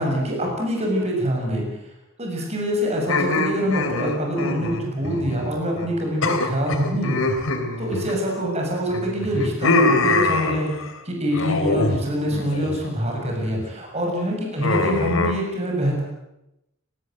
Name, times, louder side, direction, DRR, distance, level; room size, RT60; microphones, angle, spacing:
voice 1, 0.0-1.6 2.2-7.2 7.8-10.7 11.0-16.0, equal, 30° right, 0 dB, 7.0 m, -25 dB
sound 1, 3.1-5.5 5.8-5.9 6.2-8.5 8.9-10.9 11.3-12.0 12.3-12.8 13.2-13.6 14.6-15.3, left 3 dB, 75° left, 3.7 m, -24 dB
30.0 x 18.5 x 7.8 m, 0.90 s
head